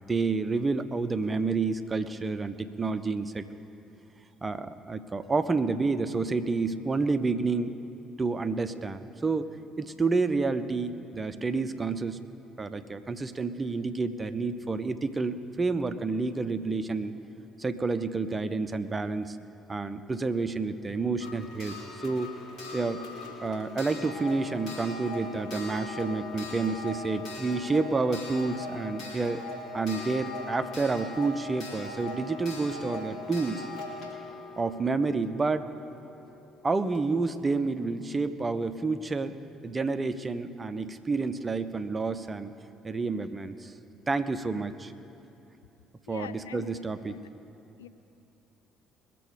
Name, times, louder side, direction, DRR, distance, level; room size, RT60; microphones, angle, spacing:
voice 1, 0.1-3.5 4.4-7.8 8.2-9.5 9.8-12.2 12.6-17.1 17.6-19.4 19.7-22.3 22.7-23.0 23.4-29.5 29.7-33.6 34.6-35.7 36.6-39.3 39.6-42.5 42.8-43.7 44.1-44.9 46.1-47.2, right 3 dB, 25° right, 11 dB, 0.8 m, -29 dB
Clock, 21.2-35.8 36.9-37.0 37.3-37.4, left 2 dB, 65° left, 3.2 m, -40 dB
voice 2, 46.1-46.7 47.1-47.3 47.8-47.9, left 9 dB, 85° left, 11 dB, 0.5 m, -43 dB
21.0 x 7.7 x 5.2 m, 2.9 s
hypercardioid pair, 50°, 0 cm